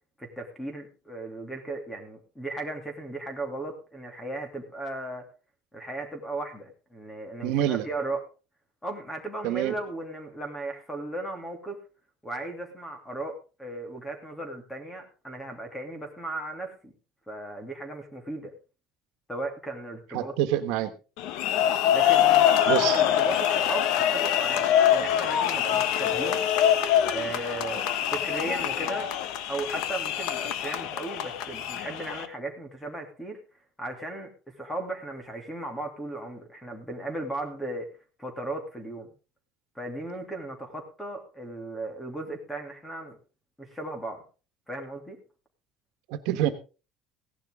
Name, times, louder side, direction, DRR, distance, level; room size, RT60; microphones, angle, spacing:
voice 1, 0.2-5.3 5.7-8.2 8.8-11.8 12.2-16.9 17.3-18.5 19.3-20.3 21.9-26.4 27.1-29.1 29.5-33.4 33.8-37.9 38.2-39.1 39.7-43.2 43.6-44.2 44.7-45.2, right 2 dB, 5° left, 5 dB, 2.8 m, -36 dB
voice 2, 7.4-7.8 9.4-9.7 20.1-20.9 22.7-23.0 46.1-46.5, right 12 dB, 75° right, 9 dB, 1.5 m, -26 dB
sound 1, 21.2-32.3, left 10 dB, 65° left, 1.3 m, -24 dB
16.5 x 11.5 x 3.7 m, 0.33 s
cardioid pair, 170°, 0 cm